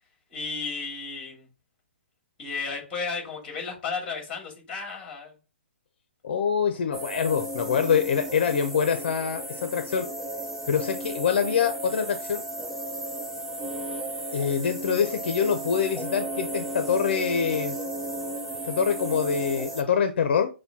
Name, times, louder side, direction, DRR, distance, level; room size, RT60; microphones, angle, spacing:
voice 1, 0.3-1.5 2.4-5.3, left 4 dB, 15° left, 2.1 m, -33 dB
voice 2, 6.2-10.1 10.7-12.4 14.3-17.8 18.6-20.6, left 7 dB, 60° left, 0.6 m, -25 dB
sound 1, 6.9-19.8, right 1 dB, 5° right, 0.3 m, -34 dB
6.6 x 2.2 x 2.8 m
hypercardioid pair, 160°, 6 cm